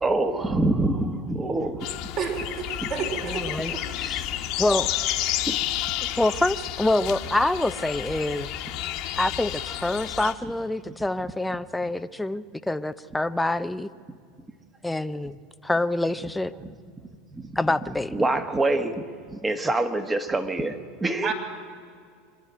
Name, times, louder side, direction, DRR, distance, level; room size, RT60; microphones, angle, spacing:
voice 1, 0.0-1.9 2.8-2.9 5.4-5.6 6.0-6.1 17.3-17.5 18.1-21.3, right 2 dB, 15° right, 8 dB, 1.5 m, -26 dB
sound 1, 1.8-10.3, left 12 dB, 55° left, 1.4 m, -31 dB
voice 2, 2.2-3.8 21.2-21.3, right 6 dB, 50° right, 1 dB, 4.9 m, -30 dB
voice 3, 3.2-4.2 4.6-4.9 6.2-8.5 9.2-13.9 14.8-15.4 15.6-16.5 17.6-18.1, left 2 dB, 5° left, 11 dB, 0.6 m, -26 dB
25.5 x 11.0 x 9.3 m, 2.2 s
hypercardioid pair, 90°, 0 cm